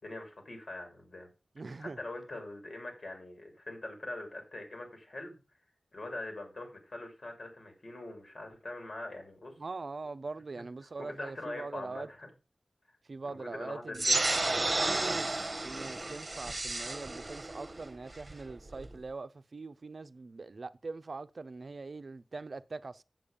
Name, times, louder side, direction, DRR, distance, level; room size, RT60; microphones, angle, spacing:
voice 1, 0.0-1.3 1.8-5.4 5.9-9.5 11.0-12.3 13.3-14.2, left 2 dB, 75° left, 3.4 m, -43 dB
voice 2, 1.6-2.0 9.6-12.1 13.1-14.4 14.9-23.0, right 3 dB, 70° right, 0.5 m, -42 dB
sound 1, 13.9-19.0, right 2 dB, 45° right, 0.9 m, -32 dB
7.6 x 7.0 x 5.2 m
wide cardioid pair, 50°, 0 cm